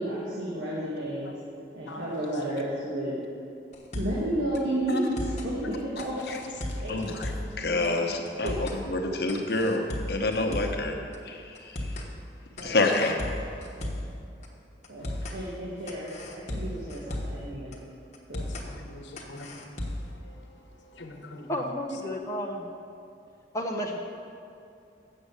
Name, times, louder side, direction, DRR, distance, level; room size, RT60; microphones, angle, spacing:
voice 1, 0.0-1.3 1.7-3.1 3.9-6.2 6.7-7.2 7.5-7.8 8.4-8.7 12.6-12.9 13.8-14.0 14.9-17.7 18.3-18.4, right 1 dB, 75° right, -7 dB, 1.7 m, -32 dB
sound 1, 3.7-4.3 4.5-4.6 5.0-5.5 6.0-7.6 7.8-7.9 8.3-8.8 9.3-10.8 11.1-11.2 11.5-12.1 12.6-14.1 14.4-14.5 14.8-15.4 15.9-17.4 17.7-17.8 18.1-18.7 19.2-20.1, left 1 dB, 40° left, 1.2 m, -35 dB
voice 2, 6.9-10.9 11.3-11.4 12.6-13.2, left 2 dB, 60° left, 3 dB, 1.0 m, -27 dB
voice 3, 18.3-19.6 20.9-21.5, left 2 dB, 80° left, 3 dB, 1.1 m, -44 dB
voice 4, 21.5-22.7 23.5-24.0, equal, 15° left, -2 dB, 0.6 m, -31 dB
7.8 x 6.4 x 8.0 m, 2.6 s
head